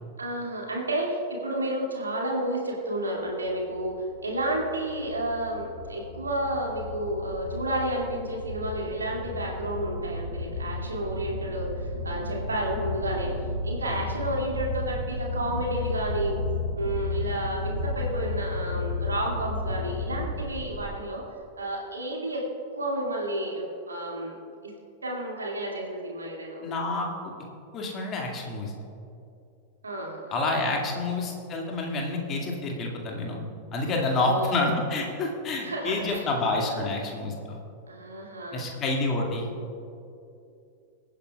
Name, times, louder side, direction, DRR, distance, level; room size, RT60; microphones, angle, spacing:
voice 1, 0.2-13.3 13.6-16.4 16.8-21.2 21.6-22.4 22.7-24.4 25.0-26.7 29.8-30.5 34.1-34.7 35.6-36.3 36.6-36.9 37.9-38.7 39.3-39.6, right 1 dB, 75° right, -2 dB, 2.4 m, -31 dB
sound 1, 3.4-20.9, left 2 dB, 70° left, 2.6 m, -33 dB
voice 2, 26.6-27.3 27.7-28.7 30.3-33.4 33.7-37.6 38.5-39.5, left 2 dB, 30° left, 0 dB, 2.2 m, -28 dB
23.0 x 9.8 x 2.4 m, 2.7 s
figure-of-eight pair, 90°, 0 cm